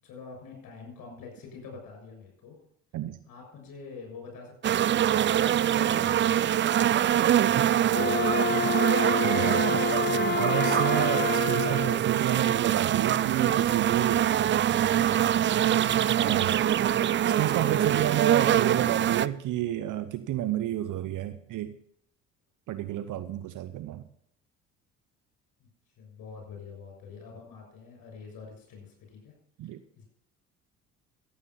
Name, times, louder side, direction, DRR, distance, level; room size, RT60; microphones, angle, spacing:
voice 1, 0.0-2.6 3.3-9.7 17.1-18.4 26.0-29.3 29.6-30.0, left 5 dB, 60° left, 3 dB, 6.8 m, -47 dB
sound 1, 4.6-19.3, right 11 dB, 30° right, 0.5 m, -24 dB
Wind instrument woodwind instrument, 7.9-12.0, left 6 dB, 25° left, 0.7 m, -29 dB
voice 2, 9.2-9.6 10.4-14.3 16.2-16.7 17.3-21.8 22.7-24.0 29.6-29.8, right 12 dB, 50° right, 12 dB, 0.9 m, -30 dB
14.5 x 8.8 x 5.9 m, 0.68 s
hypercardioid pair, 60°, 39 cm